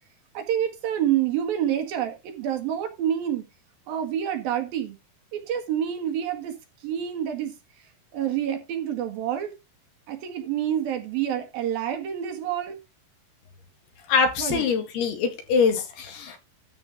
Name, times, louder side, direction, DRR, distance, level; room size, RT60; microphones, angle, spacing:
voice 1, 0.3-3.4 3.9-5.0 5.3-6.6 6.8-7.5 8.1-9.5 10.1-12.8 14.4-14.6, right 10 dB, 70° right, 3.4 m, -27 dB
voice 2, 14.1-16.4, left 5 dB, 75° left, 4.0 m, -23 dB
13.0 x 4.5 x 5.7 m
omnidirectional pair, 4.6 m